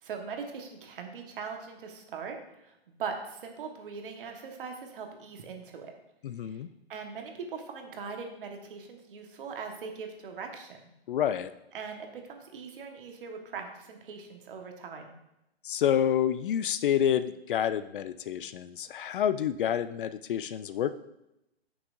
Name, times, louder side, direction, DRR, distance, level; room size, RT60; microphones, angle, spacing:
voice 1, 0.0-5.9 6.5-6.6 6.9-10.8 11.7-15.1, right 5 dB, 55° right, 3 dB, 1.4 m, -41 dB
voice 2, 6.2-6.7 11.1-11.5 15.6-20.9, left 9 dB, 55° left, 13 dB, 0.4 m, -28 dB
9.4 x 6.1 x 2.6 m, 0.88 s
hypercardioid pair, 140°, 32 cm